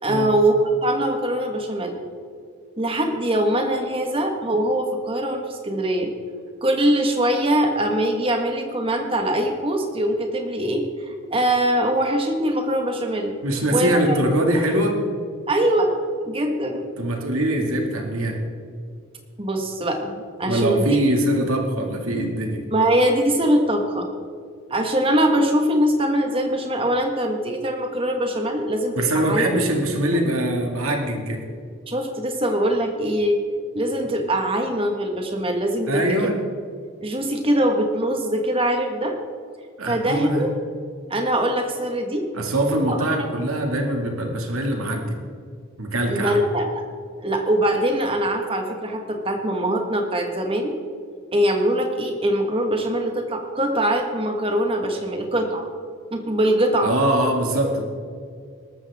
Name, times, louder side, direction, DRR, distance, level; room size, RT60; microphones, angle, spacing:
voice 1, 0.0-2.0 2.8-6.1 6.6-13.3 13.7-14.2 14.5-14.6 15.5-15.9 16.2-16.8 19.4-21.0 22.7-24.1 24.7-29.6 31.9-33.4 33.7-36.3 37.0-39.2 39.9-40.5 41.1-42.3 42.9-43.0 46.1-46.8 47.2-50.7 51.3-55.7 56.1-56.9, right 1 dB, 25° right, 3 dB, 1.5 m, -22 dB
voice 2, 13.4-15.0 17.0-18.4 20.5-22.7 29.0-31.4 35.9-36.4 39.8-40.4 42.3-45.2 45.8-46.4 56.8-57.8, right 1 dB, 80° right, 2 dB, 2.2 m, -23 dB
19.0 x 13.5 x 3.6 m, 2.2 s
head